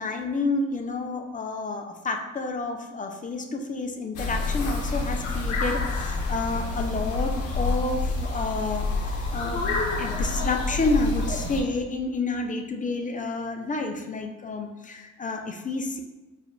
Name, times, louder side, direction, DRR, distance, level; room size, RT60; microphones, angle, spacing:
voice 1, 0.0-9.7 10.0-16.0, left 3 dB, 25° left, 4 dB, 0.5 m, -29 dB
sound 1, 4.2-11.6, left 3 dB, 80° left, 0.9 m, -28 dB
4.7 x 2.5 x 3.1 m, 1.2 s
cardioid pair, 90°, 30 cm